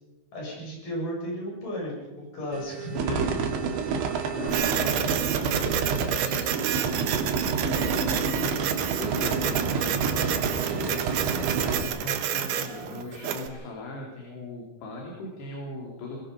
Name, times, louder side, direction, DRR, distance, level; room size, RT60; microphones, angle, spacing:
voice 1, 0.3-3.5, equal, 45° left, -3 dB, 8.8 m, -34 dB
sound 1, 2.5-11.8, right 10 dB, 25° right, 2.8 m, -41 dB
sound 2, 2.9-11.8, right 5 dB, 85° right, 4.3 m, -28 dB
voice 2, 4.4-7.7 8.2-11.1 11.6-16.2, left 2 dB, 65° left, -1 dB, 5.1 m, -39 dB
Printer, 4.5-13.5, right 9 dB, 70° right, 2.1 m, -30 dB
22.5 x 22.0 x 5.3 m, 1.1 s
omnidirectional pair, 5.3 m